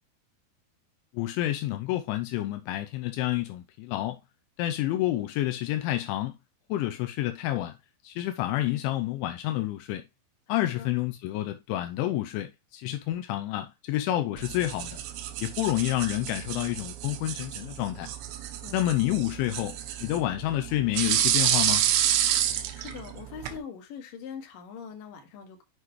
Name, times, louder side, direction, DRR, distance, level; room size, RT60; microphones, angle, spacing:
voice 1, 1.1-4.2 4.6-6.4 6.7-7.8 8.0-10.0 10.5-15.0 15.4-18.1 18.7-21.9, left 14 dB, 85° left, 2.9 m, -29 dB
sound 1, 14.4-23.6, right 11 dB, 80° right, 3.1 m, -29 dB
voice 2, 18.6-19.0 22.5-25.6, left 7 dB, 55° left, 2.8 m, -43 dB
7.7 x 6.4 x 3.1 m
omnidirectional pair, 5.6 m